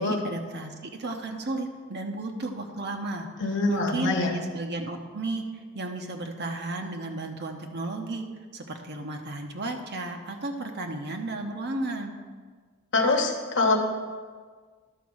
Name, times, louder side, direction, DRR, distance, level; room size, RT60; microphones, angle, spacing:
voice 1, 0.0-5.4 5.7-8.2 8.5-12.2, right 2 dB, 50° right, 4 dB, 1.0 m, -33 dB
voice 2, 3.4-4.3 12.9-13.8, left 3 dB, 60° left, 2 dB, 1.2 m, -24 dB
11.5 x 4.2 x 6.3 m, 1.6 s
head